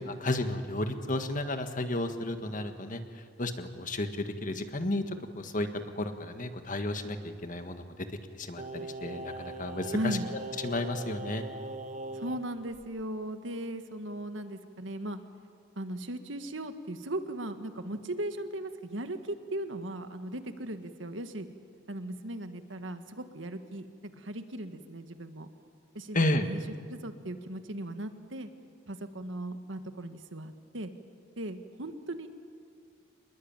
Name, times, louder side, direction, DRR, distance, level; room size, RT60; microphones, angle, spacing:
voice 1, 0.2-3.0 3.4-5.0 5.3-5.7 5.9-7.2 7.4-8.1 8.3-10.2 10.6-11.4 26.1-26.4, left 1 dB, 45° left, 7 dB, 1.7 m, -32 dB
Singing, 8.6-12.4 12.7-12.9, right 2 dB, 40° right, 1.1 m, -40 dB
voice 2, 9.9-10.3 12.1-15.2 15.7-21.5 21.9-25.5 25.9-26.6 26.9-28.5 28.9-30.9 31.4-32.3, right 1 dB, 80° right, 8 dB, 1.7 m, -37 dB
26.0 x 21.0 x 9.0 m, 2.1 s
head